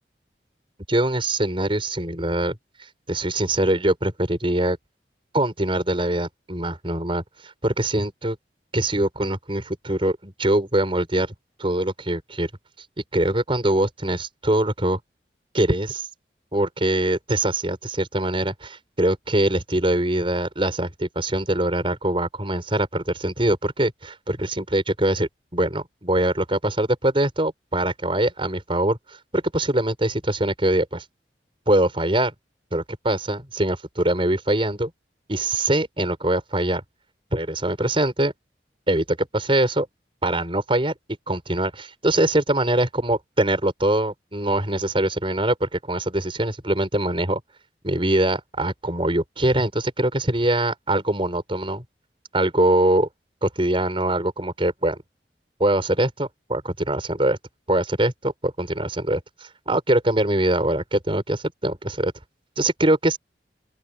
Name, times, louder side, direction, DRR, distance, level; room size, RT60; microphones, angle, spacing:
voice 1, 0.9-2.6 3.1-4.8 5.3-8.4 8.7-11.3 11.6-12.5 13.1-15.0 15.5-16.1 16.5-29.0 29.3-31.0 31.7-32.3 32.7-34.9 35.3-36.8 37.3-38.3 38.9-39.9 40.2-40.9 41.3-47.4 47.8-51.8 52.3-53.1 53.4-55.0 55.6-57.4 57.7-59.2 59.7-62.1 62.6-63.2, right 1 dB, 30° right, 5.9 m, -23 dB
open air
head